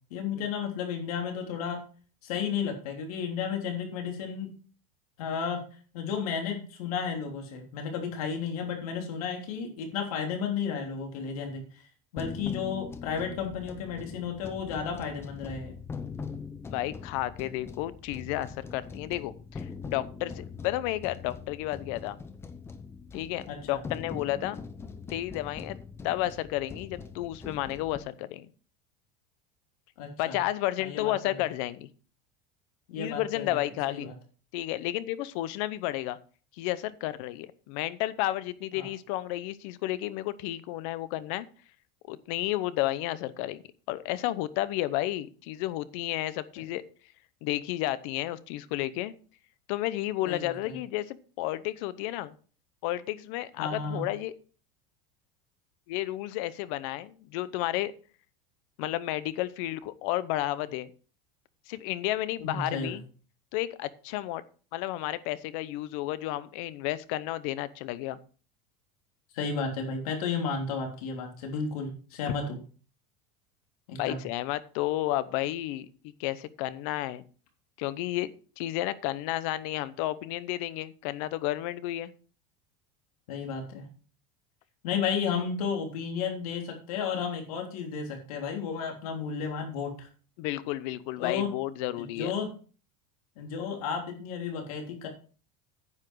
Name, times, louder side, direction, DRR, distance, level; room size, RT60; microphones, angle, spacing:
voice 1, 0.1-1.8 2.2-4.5 5.2-5.6 5.9-11.6 12.1-15.7 23.5-23.8 30.0-30.4 30.8-31.3 32.9-33.6 33.9-34.1 38.7-38.9 50.2-50.7 53.6-54.0 62.4-62.9 69.3-72.6 73.9-74.2 83.3-83.8 84.8-90.1 91.2-91.5 92.0-92.5 93.4-95.1, left 6 dB, 85° left, 2 dB, 3.4 m, -33 dB
sound 1, 12.2-28.0, left 5 dB, 15° left, 0.8 m, -42 dB
voice 2, 16.7-22.2 23.1-24.6 25.1-25.8 26.0-28.5 30.2-31.9 33.0-34.1 34.5-36.2 36.6-41.5 42.1-43.6 43.9-46.8 47.4-49.1 49.7-52.3 52.8-54.3 55.9-57.9 58.8-60.9 61.7-63.0 63.5-64.4 64.7-68.2 74.0-77.2 77.8-78.3 78.6-82.1 90.4-92.3, left 15 dB, 60° left, 17 dB, 0.8 m, -32 dB
9.9 x 8.4 x 4.7 m, 0.39 s
supercardioid pair, 160°, 18 cm